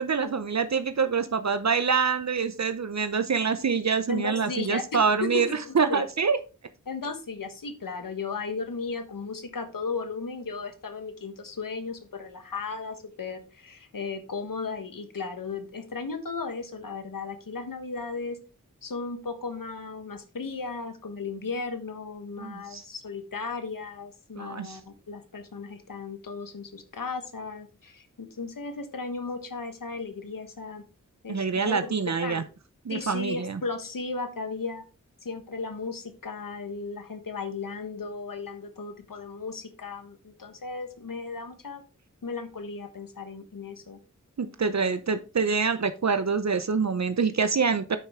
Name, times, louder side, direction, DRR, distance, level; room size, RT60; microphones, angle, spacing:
voice 1, 0.0-6.4 22.4-22.8 24.4-24.8 31.3-32.4 32.8-33.6 44.4-48.0, right 5 dB, 55° right, 10 dB, 0.7 m, -26 dB
voice 2, 4.1-6.0 6.9-18.4 18.8-30.8 31.2-32.5 32.9-34.8 35.2-41.8 42.2-44.0 44.9-45.0, left 4 dB, 85° left, 8 dB, 1.3 m, -35 dB
9.0 x 5.8 x 3.6 m, 0.33 s
wide cardioid pair, 60°, 32 cm